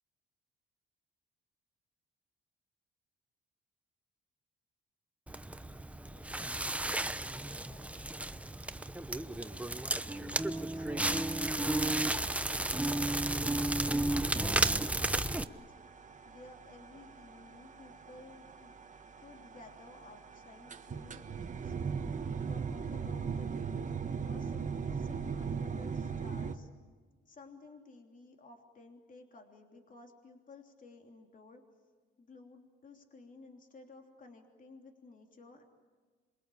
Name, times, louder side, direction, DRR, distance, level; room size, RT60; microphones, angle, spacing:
Crackle, 5.3-15.4, right 1 dB, 5° right, 0.8 m, -33 dB
voice 1, 6.0-8.0 10.0-11.2 12.9-15.7 16.2-18.7 19.2-21.7 22.5-23.8 24.2-26.7 27.3-31.6 32.2-35.6, left 3 dB, 40° left, 3 dB, 3.2 m, -55 dB
sound 1, 10.8-26.5, right 6 dB, 40° right, 1.3 m, -41 dB
27.5 x 23.0 x 8.6 m, 1.5 s
cardioid pair, 90°, 20 cm